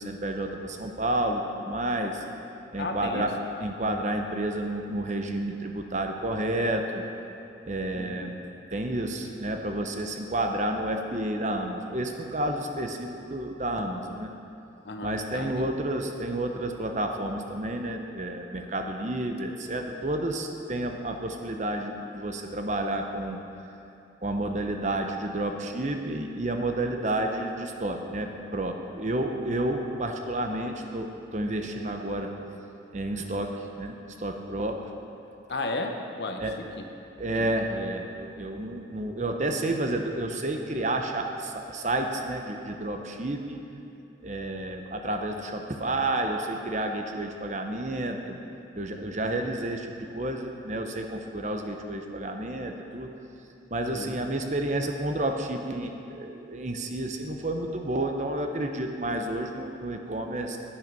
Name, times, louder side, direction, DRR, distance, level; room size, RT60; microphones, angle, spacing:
voice 1, 0.0-2.2 2.7-7.0 7.6-8.4 8.7-14.3 15.0-23.4 24.2-32.3 32.9-34.9 36.4-36.5 37.2-43.6 44.2-48.4 48.8-53.1 53.7-60.6, right 1 dB, 40° right, 4 dB, 0.8 m, -30 dB
voice 2, 2.8-3.3 7.9-8.4 14.8-15.7 35.5-36.9 37.3-37.5 53.9-54.2, left 2 dB, 70° left, 4 dB, 0.9 m, -34 dB
10.5 x 8.9 x 5.4 m, 2.8 s
head